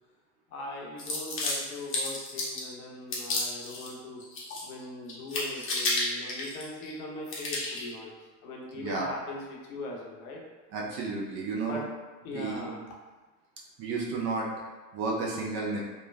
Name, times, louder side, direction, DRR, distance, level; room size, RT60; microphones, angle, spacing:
voice 1, 0.5-4.2 4.6-10.4 11.6-11.8 12.2-13.0, left 2 dB, 60° left, -2 dB, 0.8 m, -40 dB
sound 1, 1.0-2.7 3.1-3.9 4.2-4.8 5.1-6.9 7.3-7.9, left 2 dB, 25° left, 0.7 m, -32 dB
voice 2, 8.7-9.1 10.7-11.8 12.3-12.7 13.8-14.5 14.9-15.8, right 3 dB, 35° right, -3 dB, 0.5 m, -32 dB
3.1 x 2.1 x 2.2 m, 1.3 s
hypercardioid pair, 80°, 48 cm